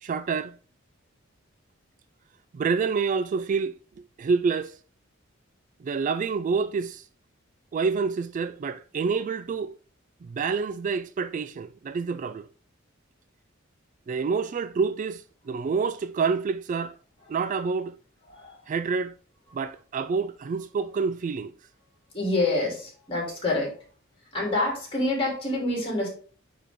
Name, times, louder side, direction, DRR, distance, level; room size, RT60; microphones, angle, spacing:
voice 1, 0.0-0.6 2.5-3.7 4.2-4.8 5.8-7.1 7.7-9.7 10.2-12.5 14.1-16.9 17.3-17.9 18.7-19.1 19.5-21.5, right 5 dB, 40° right, 0.3 m, -27 dB
voice 2, 18.3-18.6 22.1-23.7 24.3-26.1, left 2 dB, 30° left, 3.4 m, -27 dB
9.2 x 3.7 x 3.6 m
head